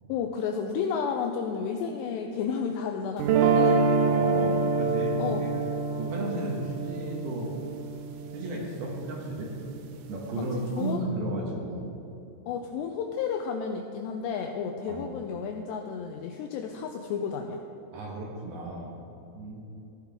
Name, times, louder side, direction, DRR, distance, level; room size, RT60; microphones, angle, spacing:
voice 1, 0.1-3.9 5.2-5.5 10.4-11.1 12.5-17.6, left 6 dB, 90° left, 4 dB, 2.4 m, -32 dB
sound 1, 3.2-9.3, right 4 dB, 85° right, 3.1 m, -26 dB
voice 2, 4.1-5.5 6.0-7.5 8.3-9.5 10.1-11.9 14.9-15.0 17.9-18.9 19.3-19.6, right 1 dB, 65° right, -2 dB, 2.7 m, -34 dB
15.5 x 10.5 x 3.6 m, 2.8 s
omnidirectional pair, 5.5 m